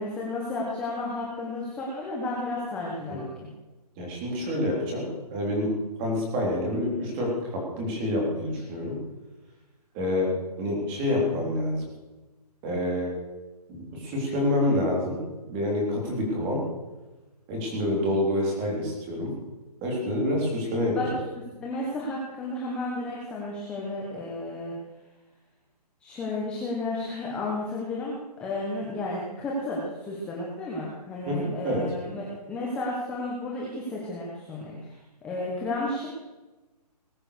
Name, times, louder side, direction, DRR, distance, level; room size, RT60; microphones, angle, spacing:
voice 1, 0.0-3.2 21.0-21.1 21.4-24.7 26.0-34.9 35.2-36.1, left 2 dB, 5° left, -4 dB, 1.2 m, -32 dB
voice 2, 4.0-5.7 6.0-9.0 9.9-10.3 10.6-11.9 12.6-13.1 13.7-15.2 15.5-16.6 17.5-19.3 19.8-21.2 31.3-31.8, left 1 dB, 15° right, -1 dB, 3.5 m, -27 dB
20.0 x 8.7 x 6.7 m, 1.1 s
hypercardioid pair, 175°, 21 cm